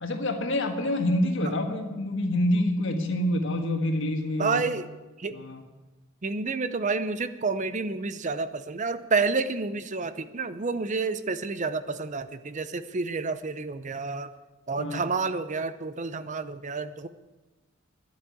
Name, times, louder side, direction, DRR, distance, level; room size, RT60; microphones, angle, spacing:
voice 1, 0.0-4.6 5.3-5.6 14.8-15.0, left 1 dB, 60° left, 4 dB, 1.6 m, -27 dB
voice 2, 4.4-4.9 5.2-5.4 6.2-14.3 14.7-17.1, right 4 dB, 35° right, 13 dB, 0.6 m, -29 dB
11.5 x 8.4 x 9.1 m, 1.2 s
head